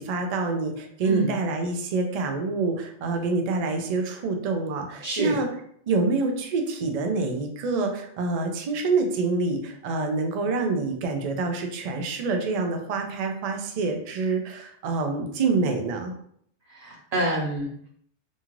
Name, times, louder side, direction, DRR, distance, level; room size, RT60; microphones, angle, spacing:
voice 1, 0.0-5.5 5.9-16.1, right 3 dB, 75° right, 4 dB, 0.3 m, -26 dB
voice 2, 5.0-5.4 16.7-17.9, right 2 dB, 35° right, -4 dB, 0.8 m, -27 dB
2.7 x 2.4 x 2.9 m, 0.65 s
omnidirectional pair, 1.2 m